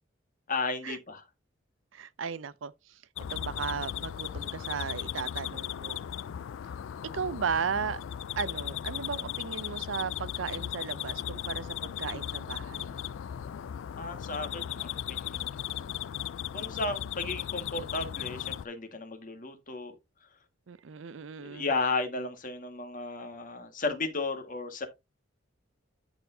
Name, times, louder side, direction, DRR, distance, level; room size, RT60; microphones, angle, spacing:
voice 1, 0.5-1.2 14.0-15.9 16.5-20.0 21.4-24.9, left 3 dB, 45° left, 1.7 m, -34 dB
voice 2, 1.9-2.7 3.3-6.0 7.1-8.0 8.4-12.9 20.7-21.7, right 6 dB, 85° right, 0.5 m, -35 dB
sound 1, 3.2-18.7, left 10 dB, 75° left, 0.3 m, -37 dB
13.5 x 4.5 x 2.7 m
head